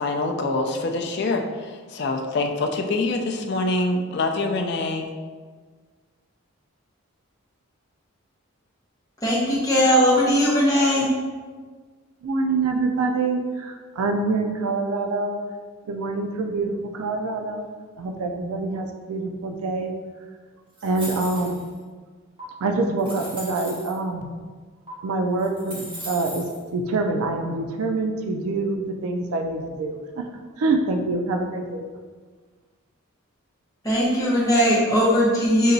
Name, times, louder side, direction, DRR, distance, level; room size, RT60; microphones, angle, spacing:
voice 1, 0.0-5.1, left 2 dB, 50° left, 3 dB, 0.4 m, -25 dB
voice 2, 9.2-11.1 33.8-35.7, equal, 15° left, -8 dB, 1.0 m, -19 dB
voice 3, 12.2-15.4 15.9-17.7 18.0-19.9 20.8-21.6 22.6-24.3 25.0-30.2 30.6-31.8, right 3 dB, 80° right, 4 dB, 0.4 m, -25 dB
sound 1, 20.8-21.8 22.4-22.5 23.0-23.9 24.9-25.0 25.4-26.6, right 1 dB, 20° right, 1.0 m, -38 dB
5.4 x 2.8 x 2.6 m, 1.5 s
head